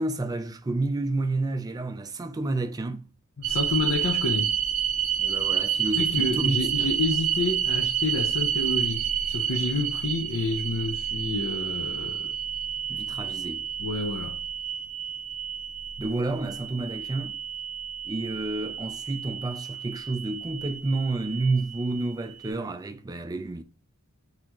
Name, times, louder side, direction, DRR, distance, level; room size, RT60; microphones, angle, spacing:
voice 1, 0.0-3.1 5.2-7.0 12.9-13.7 16.0-17.4 18.1-23.6, right 2 dB, 15° right, 0.3 m, -30 dB
voice 2, 3.4-4.5 6.0-12.3 13.8-14.4, left 3 dB, 75° left, 0.7 m, -29 dB
sound 1, 3.4-22.5, right 9 dB, 75° right, 0.5 m, -30 dB
4.1 x 2.8 x 2.9 m
head